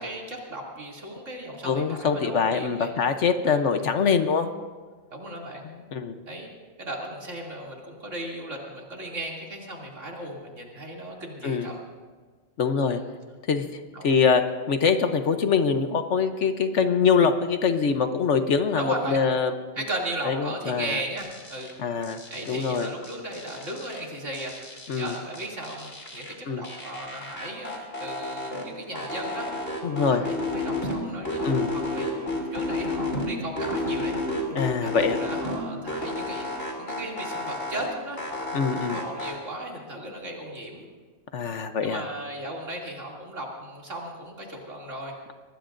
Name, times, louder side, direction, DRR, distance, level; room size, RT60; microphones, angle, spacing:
voice 1, 0.0-2.9 3.4-3.6 5.1-5.6 6.3-6.5 6.8-11.8 12.9-13.1 13.9-14.1 18.7-19.2 19.8-21.7 22.3-24.6 24.9-29.6 30.0-34.2 34.8-38.2 38.8-40.9 41.8-45.1, right 1 dB, 65° right, -2 dB, 3.1 m, -36 dB
voice 2, 1.6-4.5 5.9-6.1 11.4-11.7 12.6-13.0 13.5-13.6 14.0-19.5 20.2-21.0 21.8-22.2 22.5-22.9 24.9-25.2 26.5-26.6 29.8-30.3 31.4-31.7 34.5-35.2 38.5-39.0 41.3-42.0, left 5 dB, 60° left, 8 dB, 1.1 m, -24 dB
sound 1, 21.2-21.7 22.0-24.0 24.3-26.3 26.6-28.7 28.9-31.0 31.3-33.3 33.6-35.6 35.9-37.9 38.2-39.3, left 2 dB, 45° left, 3.1 m, -31 dB
25.0 x 19.5 x 2.6 m, 1.4 s
omnidirectional pair, 1.4 m